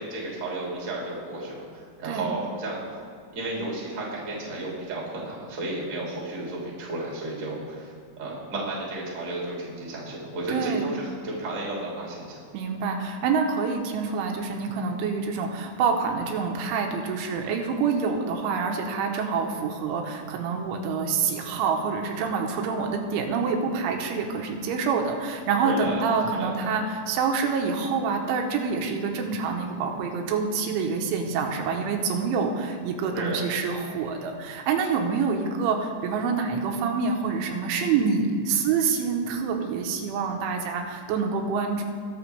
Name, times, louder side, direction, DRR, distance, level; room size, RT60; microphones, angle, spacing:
voice 1, 0.0-2.8 3.3-7.9 8.2-12.4 25.6-26.1 26.3-26.5 33.1-33.5, right 2 dB, 25° right, -4 dB, 1.9 m, -33 dB
voice 2, 10.5-10.9 12.5-41.8, right 5 dB, 85° right, 2 dB, 3.5 m, -27 dB
20.5 x 6.9 x 3.4 m, 2.3 s
omnidirectional pair, 5.4 m